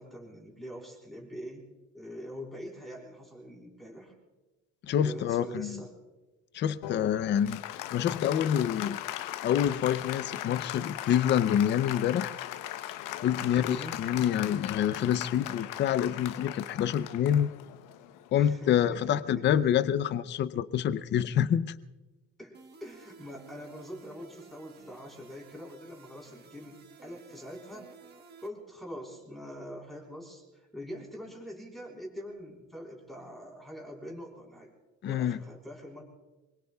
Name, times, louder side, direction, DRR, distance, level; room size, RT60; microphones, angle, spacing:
voice 1, 0.0-1.7 1.9-4.1 5.0-5.9 13.3-14.0 18.3-19.7 22.4-27.9 28.4-34.7 35.0-36.0, equal, ahead, -2 dB, 3.9 m, -44 dB
voice 2, 4.9-5.8 6.5-7.6 7.9-9.0 9.4-12.3 13.2-17.5 18.3-21.7 35.0-35.4, left 9 dB, 35° left, 14 dB, 0.5 m, -27 dB
Applause, 6.8-18.7, left 13 dB, 80° left, 0.8 m, -39 dB
sound 1, 22.5-28.5, right 5 dB, 30° right, 1.4 m, -55 dB
25.5 x 24.0 x 2.3 m, 1.1 s
cardioid pair, 160°, 32 cm